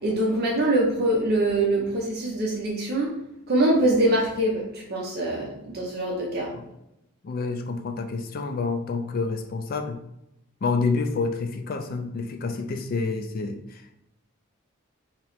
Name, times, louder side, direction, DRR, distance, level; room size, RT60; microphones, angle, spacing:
voice 1, 0.0-3.2 3.5-6.5, right 1 dB, 45° right, -3 dB, 0.7 m, -24 dB
voice 2, 7.2-10.0 10.6-13.9, left 4 dB, 40° left, 6 dB, 0.3 m, -28 dB
3.0 x 2.9 x 4.2 m, 0.84 s
head